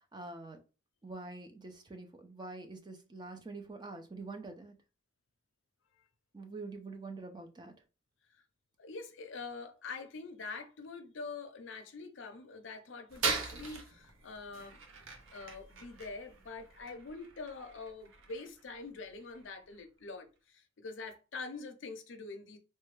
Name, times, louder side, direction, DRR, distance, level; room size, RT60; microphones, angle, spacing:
voice 1, 0.1-0.6 1.0-4.7 6.3-7.7, right 3 dB, 20° right, 0.4 m, -45 dB
voice 2, 8.8-14.8 15.3-22.6, left 4 dB, 65° left, 0.5 m, -45 dB
sound 1, 13.1-19.8, right 4 dB, 80° right, 0.6 m, -41 dB
3.3 x 2.2 x 3.2 m
head